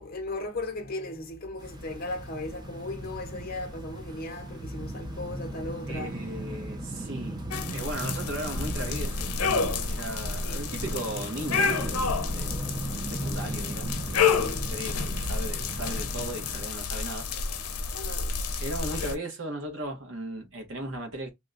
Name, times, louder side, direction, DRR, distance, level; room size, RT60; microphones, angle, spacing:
voice 1, 0.0-6.2 10.4-10.7 17.9-18.4, left 2 dB, 40° left, 0.7 m, -37 dB
sound 1, 1.6-16.6, right 1 dB, 20° right, 0.5 m, -37 dB
voice 2, 5.9-7.4 7.7-12.5 13.1-14.3 14.7-17.3 18.6-21.3, right 1 dB, 60° right, 1.1 m, -37 dB
sound 2, 7.5-19.1, left 5 dB, 90° left, 0.6 m, -30 dB
2.8 x 2.2 x 3.8 m
head